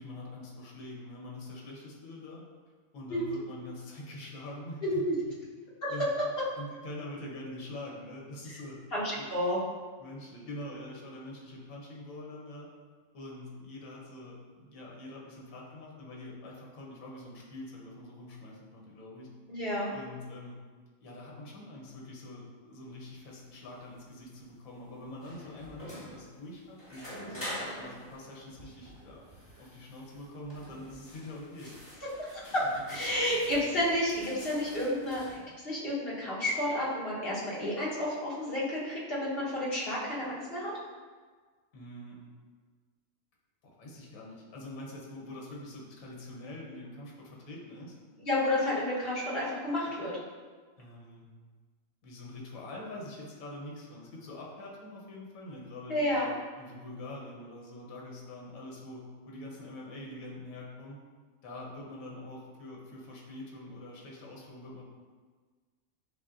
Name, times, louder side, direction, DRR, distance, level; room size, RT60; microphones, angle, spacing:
voice 1, 0.0-2.4 2.9-4.9 5.9-6.1 6.6-8.8 9.2-9.3 10.0-12.7 13.1-19.3 19.9-20.6 21.0-29.3 29.6-31.7 41.7-42.2 43.6-47.9 50.8-51.3 52.0-56.3 56.6-61.0 61.4-64.8, left 1 dB, 75° left, -2 dB, 1.3 m, -44 dB
voice 2, 4.8-5.1 5.8-5.9 8.9-9.6 19.5-19.9 32.2-35.2 35.6-40.7 48.2-50.1 55.9-56.3, left 1 dB, 45° left, -7 dB, 1.3 m, -31 dB
sound 1, 23.0-35.4, equal, 10° left, 1.4 m, -46 dB
7.0 x 2.5 x 2.5 m, 1.5 s
omnidirectional pair, 1.4 m